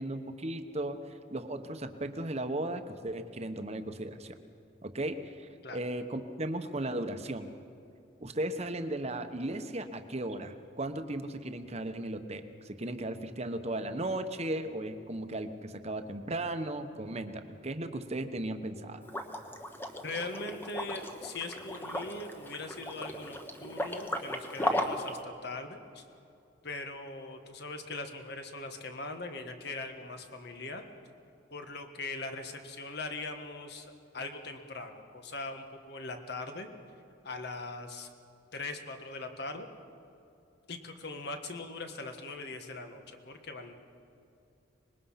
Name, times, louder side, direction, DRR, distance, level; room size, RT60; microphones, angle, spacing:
voice 1, 0.0-4.4 4.8-7.5 8.2-19.0, right 1 dB, 35° right, 8 dB, 1.1 m, -36 dB
Liquid, 19.0-25.2, left 1 dB, 10° left, 1.2 m, -36 dB
voice 2, 20.0-26.0 26.6-30.8 31.5-36.7 37.2-38.1 38.5-39.7 40.7-43.7, left 3 dB, 60° left, 6 dB, 1.7 m, -41 dB
25.0 x 21.0 x 5.8 m, 2.6 s
head